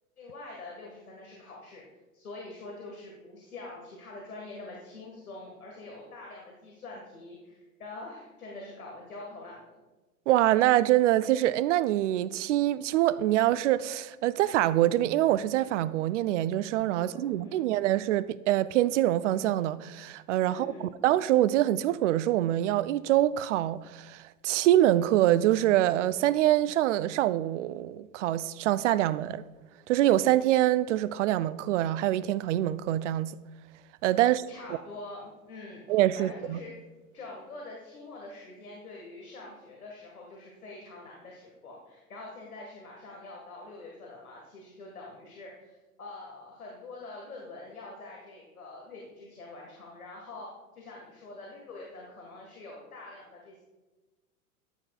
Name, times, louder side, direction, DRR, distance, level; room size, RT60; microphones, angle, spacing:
voice 1, 0.2-1.8 2.1-9.7 17.0-17.6 20.5-20.9 34.5-36.7 37.1-50.5 50.7-53.6, left 2 dB, 80° left, 1.8 m, -45 dB
voice 2, 10.3-29.4 29.9-33.4 34.0-34.4 35.9-36.6, right 14 dB, 55° right, 0.5 m, -25 dB
14.0 x 8.9 x 2.4 m
figure-of-eight pair, 90°, 43 cm